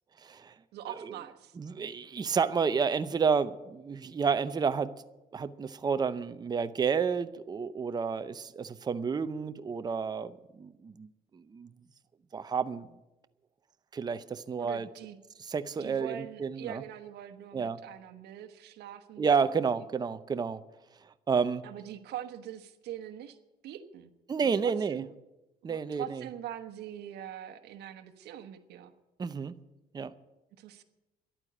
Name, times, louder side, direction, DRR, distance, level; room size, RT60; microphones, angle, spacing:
voice 1, 0.2-0.5 1.6-5.0 5.3-11.1 11.3-11.7 12.3-12.9 13.9-14.9 15.5-16.8 17.5-17.8 19.2-20.6 21.3-21.6 24.3-25.0 25.6-26.2 29.2-29.5 29.9-30.1, right 6 dB, 25° right, 11 dB, 0.6 m, -30 dB
voice 2, 0.7-1.6 14.6-15.2 15.8-19.8 21.6-23.4 23.6-24.1 24.4-25.1 25.7-28.9 30.6-30.8, right 11 dB, 75° right, 7 dB, 1.1 m, -43 dB
11.5 x 9.0 x 10.0 m, 1.0 s
cardioid pair, 110°, 17 cm